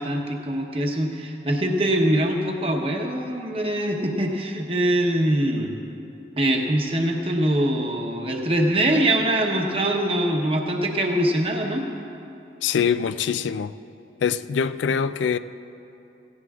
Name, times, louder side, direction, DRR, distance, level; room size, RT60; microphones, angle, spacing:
voice 1, 0.0-5.7 6.4-11.9, right 1 dB, 30° right, 1.0 m, -23 dB
voice 2, 12.6-13.7 14.2-15.4, left 7 dB, 80° left, 0.3 m, -23 dB
17.5 x 16.5 x 2.4 m
head